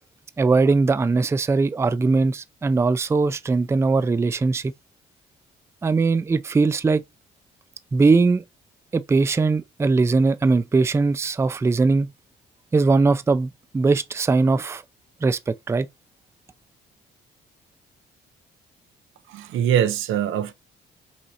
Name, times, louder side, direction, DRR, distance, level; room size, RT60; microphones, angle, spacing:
voice 1, 0.4-4.7 5.8-7.0 7.9-8.4 8.9-12.1 12.7-14.8 15.2-15.9, right 3 dB, 15° right, 0.3 m, -20 dB
voice 2, 19.3-20.5, right 9 dB, 85° right, 0.6 m, -22 dB
5.6 x 3.1 x 2.7 m
cardioid pair, 90°, 20 cm